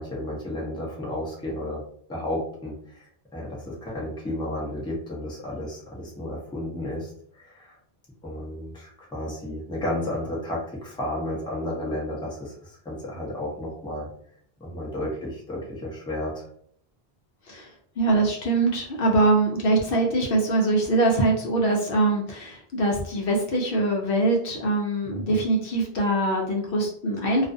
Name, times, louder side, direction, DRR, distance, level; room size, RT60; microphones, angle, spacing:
voice 1, 0.0-1.8 2.1-7.8 8.2-14.1 14.6-16.4 25.1-25.3, left 1 dB, 5° left, -4 dB, 0.5 m, -32 dB
voice 2, 18.0-27.5, right 2 dB, 65° left, 0 dB, 0.7 m, -23 dB
2.4 x 2.4 x 2.5 m, 0.63 s
omnidirectional pair, 1.1 m